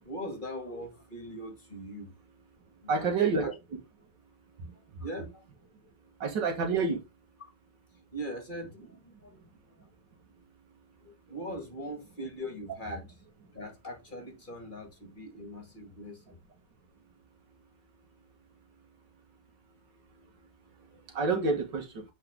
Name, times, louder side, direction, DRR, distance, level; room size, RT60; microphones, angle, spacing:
voice 1, 0.0-2.1 2.8-3.1 3.4-3.5 4.7-5.4 8.1-9.4 11.0-13.0 13.5-16.4 20.9-21.0, equal, 30° left, 2.1 m, -41 dB
voice 2, 2.9-3.8 4.6-4.7 6.2-7.0 21.1-22.0, right 4 dB, 85° right, 2.4 m, -28 dB
8.1 x 4.7 x 3.7 m
omnidirectional pair, 1.9 m